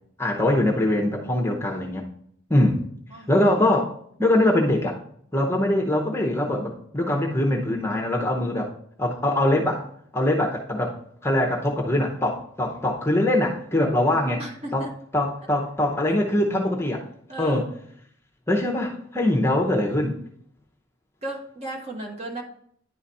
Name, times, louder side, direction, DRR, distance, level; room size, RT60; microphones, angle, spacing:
voice 1, 0.2-2.1 2.5-2.8 3.3-5.0 5.3-8.7 9.0-9.9 10.1-14.4 14.7-14.9 15.1-17.1 17.4-17.7 18.5-20.2, left 1 dB, 15° left, 0 dB, 0.8 m, -23 dB
voice 2, 14.0-14.9 17.3-17.7 21.2-22.4, right 2 dB, 30° right, 1 dB, 1.3 m, -35 dB
10.5 x 4.0 x 4.1 m, 0.65 s
head